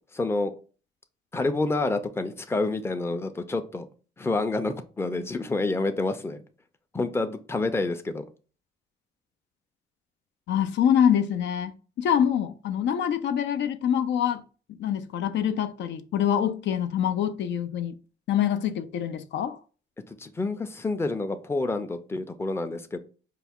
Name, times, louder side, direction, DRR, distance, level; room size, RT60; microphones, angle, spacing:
voice 1, 0.1-0.5 1.3-3.9 4.2-6.4 6.9-8.2 20.1-23.0, left 2 dB, 10° left, 0.5 m, -28 dB
voice 2, 10.5-14.4 14.8-17.9 18.3-19.6, left 9 dB, 65° left, 0.4 m, -25 dB
4.6 x 2.3 x 3.5 m
cardioid pair, 90°, 20 cm